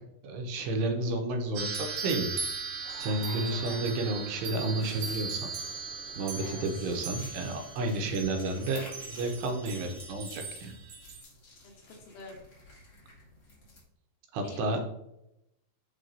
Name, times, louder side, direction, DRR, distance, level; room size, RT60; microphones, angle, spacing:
voice 1, 0.2-2.3 3.0-5.5 6.2-10.7 14.3-14.8, right 2 dB, 80° right, 4 dB, 2.9 m, -31 dB
sound 1, 1.5-11.2, right 5 dB, 65° right, 2.0 m, -39 dB
sound 2, 2.7-9.0, left 2 dB, 90° left, 1.2 m, -54 dB
voice 2, 3.2-3.9 6.4-6.9 11.6-12.4 14.4-14.8, left 2 dB, 70° left, 0 dB, 2.5 m, -47 dB
sound 3, 4.8-13.8, left 1 dB, 35° left, 1.7 m, -51 dB
9.4 x 4.1 x 2.6 m, 0.83 s
omnidirectional pair, 5.0 m